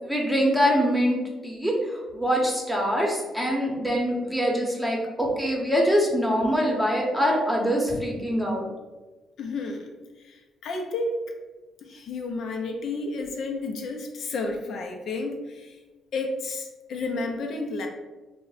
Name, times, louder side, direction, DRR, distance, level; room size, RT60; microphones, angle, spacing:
voice 1, 0.0-1.2 1.4-8.7, equal, ahead, -2 dB, 0.8 m, -24 dB
voice 2, 9.4-11.2 11.8-15.8 16.1-17.9, left 3 dB, 70° left, 2 dB, 0.4 m, -31 dB
2.5 x 2.1 x 3.9 m, 1.2 s
cardioid pair, 90°, 0 cm